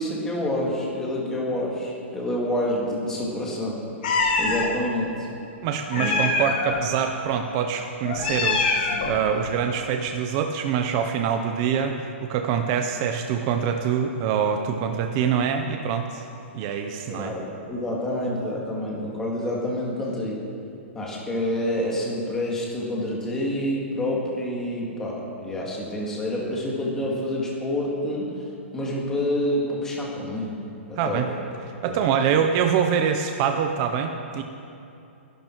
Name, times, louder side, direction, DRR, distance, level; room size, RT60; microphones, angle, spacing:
voice 1, 0.0-3.8 4.4-5.1 6.0-6.2 17.1-20.4 20.9-28.3 28.7-30.5 30.9-31.2 31.9-32.0, left 1 dB, 5° left, -3 dB, 2.0 m, -28 dB
Meow, 4.0-4.7 5.9-6.8 8.0-9.2, left 3 dB, 40° left, 2.6 m, -24 dB
voice 2, 5.6-16.2 16.5-17.3 31.0-31.3 31.8-34.4, right 7 dB, 20° right, 5 dB, 0.6 m, -25 dB
21.0 x 12.0 x 4.5 m, 2.8 s
hypercardioid pair, 180°, 7 cm